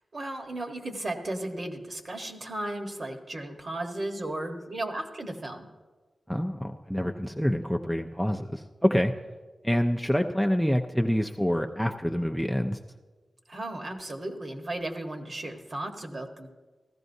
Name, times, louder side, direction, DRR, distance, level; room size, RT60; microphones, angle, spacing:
voice 1, 0.1-5.7 13.5-16.5, right 1 dB, 45° right, 4 dB, 1.2 m, -35 dB
voice 2, 6.3-9.1 9.6-12.8, equal, ahead, 4 dB, 0.4 m, -26 dB
15.0 x 14.0 x 2.7 m, 1.3 s
wide cardioid pair, 100°, 0 cm